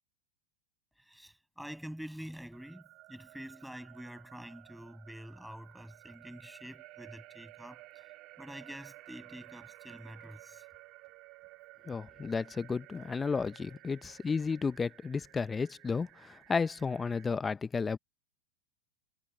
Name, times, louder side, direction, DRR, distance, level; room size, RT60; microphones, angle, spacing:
voice 1, 1.0-2.8 3.1-8.1 8.4-10.7, equal, ahead, 6.6 m, -47 dB
sound 1, 2.5-17.3, right 19 dB, 50° right, 2.1 m, -55 dB
voice 2, 11.9-18.0, left 5 dB, 15° left, 0.6 m, -33 dB
hypercardioid pair, 105°, 0 cm